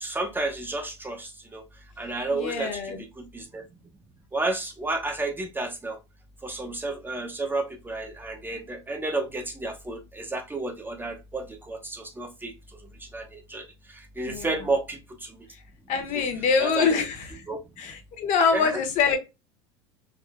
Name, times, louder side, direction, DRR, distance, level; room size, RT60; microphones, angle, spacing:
voice 1, 0.0-1.6 2.0-2.7 3.3-3.6 4.3-6.0 6.4-12.5 13.1-13.2 13.5-13.6 14.2-15.0 16.1-16.2 16.6-17.1 17.5-17.6 18.5-18.8, right 2 dB, 15° right, 0.6 m, -31 dB
voice 2, 2.3-3.0 14.2-14.6 15.9-17.3 17.8-19.2, left 5 dB, 50° left, 0.9 m, -25 dB
3.6 x 2.5 x 2.4 m
hypercardioid pair, 100°, 16 cm